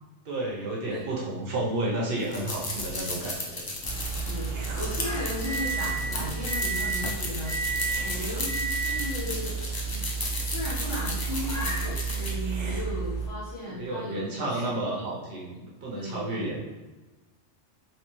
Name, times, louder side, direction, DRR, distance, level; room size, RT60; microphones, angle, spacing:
voice 1, 0.2-3.7 13.7-16.6, right 2 dB, 60° right, -4 dB, 0.9 m, -31 dB
sound 1, 2.2-12.3, left 2 dB, 35° left, 0.3 m, -35 dB
sound 2, 2.6-3.2 3.9-5.1 5.6-5.7 5.9-6.7 7.6-8.4 9.1-10.0 10.3-10.4 10.7-11.4 11.8-11.9 12.1-12.8, right 3 dB, 85° right, 1.0 m, -44 dB
sound 3, 3.8-13.3, right 5 dB, 5° left, 0.7 m, -31 dB
voice 2, 4.0-7.5 8.0-9.6 9.9-10.1 10.4-14.9 15.9-16.4, left 1 dB, 60° left, -7 dB, 1.4 m, -36 dB
3.3 x 3.1 x 3.0 m, 1.2 s
omnidirectional pair, 1.2 m